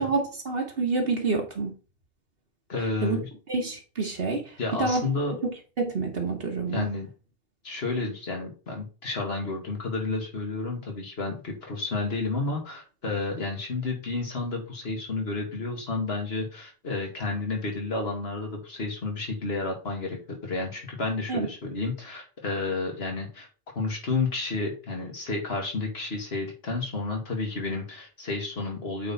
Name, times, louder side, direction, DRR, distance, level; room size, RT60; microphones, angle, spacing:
voice 1, 0.0-1.7 3.0-3.2 3.5-5.1 5.8-6.9 21.3-21.5, right 3 dB, 70° right, 1.5 m, -28 dB
voice 2, 2.7-3.3 4.6-5.4 6.7-7.1 7.6-23.5 23.8-29.1, left 3 dB, 80° left, 2.2 m, -31 dB
8.3 x 3.8 x 4.3 m
omnidirectional pair, 1.0 m